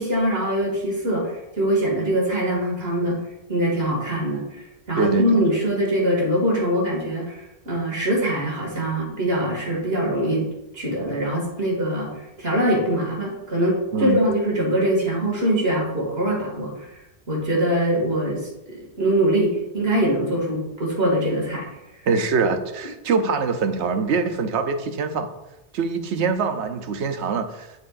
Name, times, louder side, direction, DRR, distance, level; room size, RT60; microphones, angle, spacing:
voice 1, 0.0-3.2 3.5-12.1 12.4-17.0 17.3-21.7, right 1 dB, 65° right, -3 dB, 2.6 m, -23 dB
voice 2, 5.0-5.4 13.9-14.3 22.1-25.3 25.7-27.7, right 4 dB, 85° right, 8 dB, 1.0 m, -23 dB
12.0 x 4.6 x 2.5 m, 0.94 s
omnidirectional pair, 1.1 m